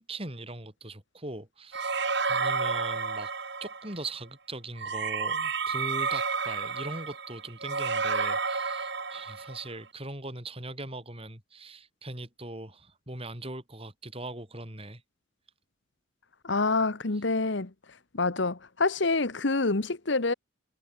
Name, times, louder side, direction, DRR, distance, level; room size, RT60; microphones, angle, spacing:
voice 1, 0.0-3.3 3.6-15.0, right 2 dB, 25° right, 5.2 m, -40 dB
sound 1, 1.7-3.9 4.8-9.7, right 4 dB, 55° right, 3.2 m, -31 dB
voice 2, 16.4-17.7 18.1-20.3, left 3 dB, 55° left, 1.1 m, -27 dB
head